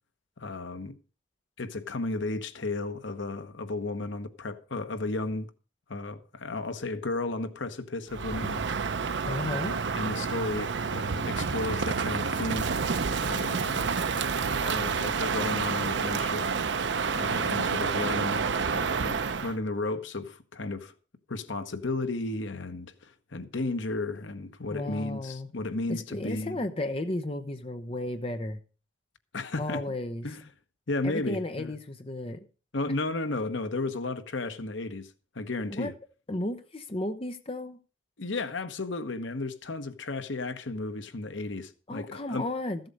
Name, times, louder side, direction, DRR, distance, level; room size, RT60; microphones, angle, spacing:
voice 1, 0.4-1.0 1.6-5.5 5.9-9.0 9.4-12.9 13.2-13.9 14.6-16.5 17.1-18.5 18.7-20.9 21.3-26.6 29.3-29.8 30.2-30.5 30.9-31.7 32.7-35.9 38.2-42.5, left 2 dB, 80° left, 1.1 m, -34 dB
Crow, 8.1-19.5, right 5 dB, 70° right, 0.6 m, -29 dB
voice 2, 9.2-9.8 24.7-25.5 25.9-28.6 29.6-30.2 31.0-32.4 35.7-35.9 36.3-37.8 41.9-42.8, left 1 dB, 30° left, 0.8 m, -33 dB
14.5 x 7.9 x 5.3 m
head